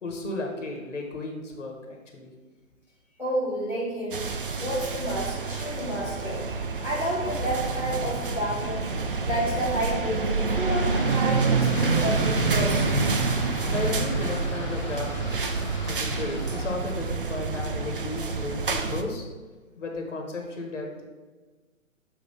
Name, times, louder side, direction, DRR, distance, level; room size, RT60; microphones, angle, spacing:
voice 1, 0.0-2.3 13.7-15.5 15.9-19.2 19.8-21.0, left 2 dB, 60° left, 1 dB, 1.2 m, -34 dB
voice 2, 3.2-4.2 4.6-6.4 6.8-8.8 9.2-12.8, equal, 5° right, -10 dB, 1.8 m, -30 dB
sound 1, 4.1-19.0, right 4 dB, 40° right, 0.4 m, -27 dB
sound 2, 10.5-16.7, left 3 dB, 35° left, 0.6 m, -39 dB
7.4 x 2.7 x 5.4 m, 1.3 s
figure-of-eight pair, 135°, 42 cm